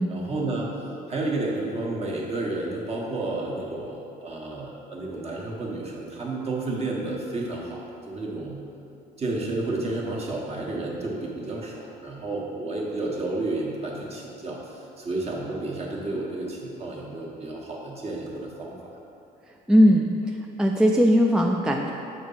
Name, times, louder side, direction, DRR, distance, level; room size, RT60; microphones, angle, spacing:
voice 1, 0.0-8.6 9.2-18.8, right 2 dB, 40° right, -3 dB, 1.4 m, -31 dB
voice 2, 19.7-21.9, equal, 5° right, 1 dB, 0.3 m, -19 dB
6.1 x 4.2 x 5.6 m, 2.8 s
cardioid pair, 110°, 17 cm